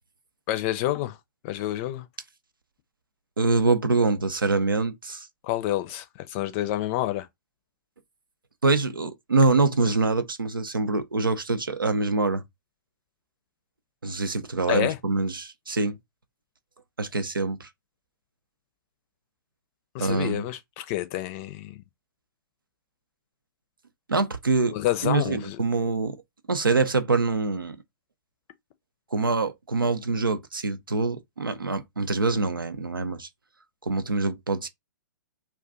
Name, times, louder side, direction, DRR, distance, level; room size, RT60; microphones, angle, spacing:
voice 1, 0.5-1.2 1.4-2.1 5.4-7.3 14.7-15.0 19.9-21.8 24.7-25.6, left 14 dB, 35° left, 0.5 m, -28 dB
voice 2, 3.4-5.3 8.6-12.4 14.0-16.0 17.0-17.7 20.0-20.4 24.1-24.8 25.0-26.2 26.5-27.8 29.1-33.3 33.8-34.7, right 3 dB, 90° right, 0.6 m, -25 dB
2.4 x 2.3 x 3.7 m
figure-of-eight pair, 115°, 11 cm